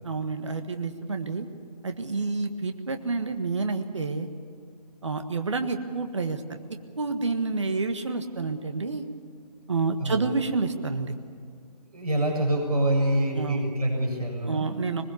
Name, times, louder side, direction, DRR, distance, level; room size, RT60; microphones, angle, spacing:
voice 1, 0.0-1.4 1.8-4.3 5.0-6.6 7.0-9.0 9.7-11.1 13.3-13.6 14.5-15.0, right 4 dB, 45° right, 7 dB, 1.6 m, -29 dB
voice 2, 11.9-14.7, right 1 dB, 65° right, 1 dB, 7.4 m, -25 dB
22.5 x 21.0 x 7.1 m, 2.3 s
hypercardioid pair, 180°, 21 cm